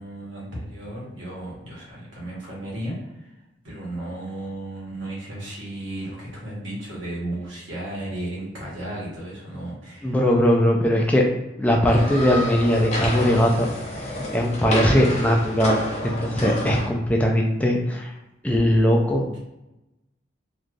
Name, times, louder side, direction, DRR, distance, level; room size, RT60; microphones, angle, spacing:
voice 1, 0.0-3.3 3.6-10.3, right 1 dB, 90° right, -5 dB, 1.2 m, -34 dB
voice 2, 10.0-11.2 11.6-13.7 14.0-18.1 18.4-19.3, equal, 10° left, -1 dB, 0.3 m, -20 dB
sound 1, 11.9-16.9, left 1 dB, 35° left, 0.7 m, -29 dB
3.2 x 2.4 x 2.5 m, 0.95 s
head